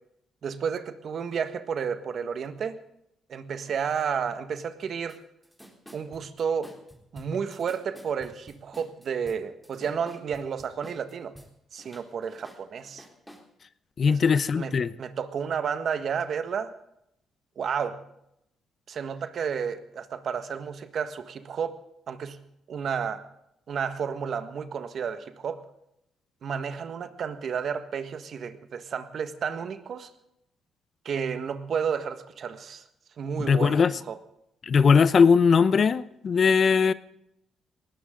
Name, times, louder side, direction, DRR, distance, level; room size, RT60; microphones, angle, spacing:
voice 1, 0.4-2.8 3.3-5.2 5.9-6.7 7.1-11.4 11.7-13.1 14.1-16.7 17.6-18.0 18.9-22.4 22.7-23.2 23.7-25.7 26.4-30.1 31.1-32.8 33.2-34.2, right 7 dB, 55° right, 10 dB, 1.6 m, -31 dB
sound 1, 5.1-5.2 5.4-11.5 11.8-13.5, equal, ahead, 3.8 m, -50 dB
voice 2, 14.0-14.9 33.5-33.9 34.7-36.9, left 5 dB, 45° left, 16 dB, 0.8 m, -20 dB
19.5 x 17.5 x 3.9 m, 0.79 s
cardioid pair, 90°, 0 cm